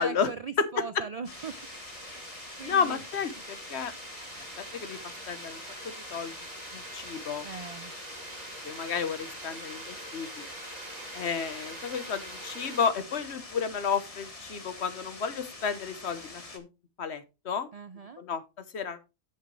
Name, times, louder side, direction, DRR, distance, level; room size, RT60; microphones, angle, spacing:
voice 1, 0.0-1.6 2.0-2.2 2.6-3.0 7.4-7.9 17.7-18.2, right 5 dB, 55° right, 12 dB, 0.4 m, -39 dB
sound 1, 1.2-16.6, left 3 dB, 30° left, 1.3 m, -46 dB
sound 2, 1.3-12.9, right 2 dB, 35° right, 1.4 m, -45 dB
voice 2, 2.6-3.9 4.6-5.0 5.3-6.3 6.7-7.5 8.6-10.4 11.1-16.7 17.0-17.7 18.2-18.4 18.7-19.0, left 6 dB, 60° left, 11 dB, 1.2 m, -32 dB
9.4 x 7.6 x 3.2 m, 0.26 s
omnidirectional pair, 1.3 m